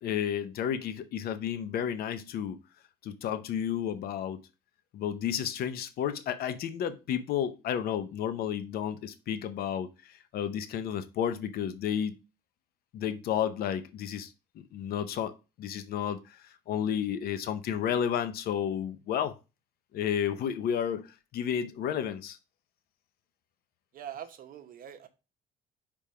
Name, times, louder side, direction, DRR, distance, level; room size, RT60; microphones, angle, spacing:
voice 1, 0.0-2.6 3.0-4.4 4.9-12.1 12.9-19.3 19.9-21.1 21.3-22.4, left 9 dB, 65° left, 0.7 m, -32 dB
voice 2, 23.9-25.1, right 9 dB, 55° right, 0.8 m, -43 dB
5.0 x 3.5 x 5.5 m
cardioid pair, 110°, 17 cm